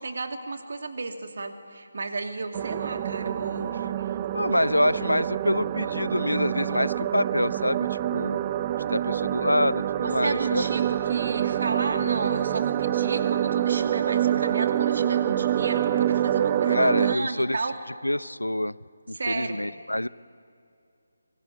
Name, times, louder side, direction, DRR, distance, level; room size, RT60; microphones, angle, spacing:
voice 1, 0.0-4.2 10.2-17.8 19.1-19.6, right 3 dB, 50° right, 6 dB, 2.7 m, -33 dB
sound 1, 2.5-17.2, right 11 dB, 20° right, 0.5 m, -26 dB
voice 2, 4.3-8.4 8.9-10.7 16.7-17.6 18.0-18.8 19.1-20.1, left 1 dB, 85° left, 19 dB, 0.7 m, -26 dB
25.0 x 22.5 x 9.8 m, 2.5 s
figure-of-eight pair, 155°, 0 cm